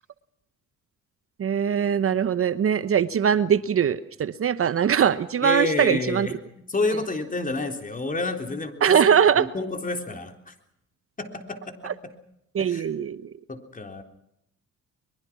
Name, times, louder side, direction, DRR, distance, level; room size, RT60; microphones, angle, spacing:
voice 1, 1.4-6.3 8.8-9.5 11.8-11.9 12.5-13.3, right 8 dB, 50° right, 14 dB, 0.9 m, -21 dB
voice 2, 5.4-9.0 9.4-10.5 11.2-11.9 12.6-12.9 13.5-14.0, left 2 dB, 25° left, 6 dB, 3.7 m, -29 dB
23.5 x 22.0 x 6.1 m, 0.78 s
cardioid pair, 90°, 30 cm